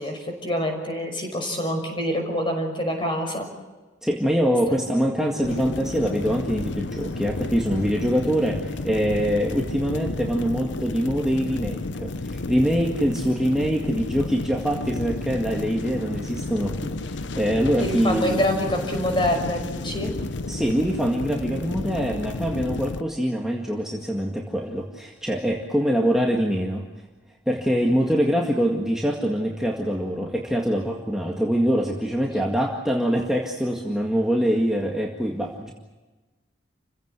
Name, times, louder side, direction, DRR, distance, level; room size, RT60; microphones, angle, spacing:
voice 1, 0.0-3.5 4.7-4.8 17.7-20.1, left 1 dB, 25° left, 3 dB, 6.0 m, -26 dB
voice 2, 4.0-18.4 20.5-26.9 27.5-35.7, equal, 5° right, -1 dB, 1.9 m, -24 dB
sound 1, 5.4-23.0, left 2 dB, 65° left, 0.8 m, -31 dB
29.5 x 16.5 x 8.4 m, 1.2 s
head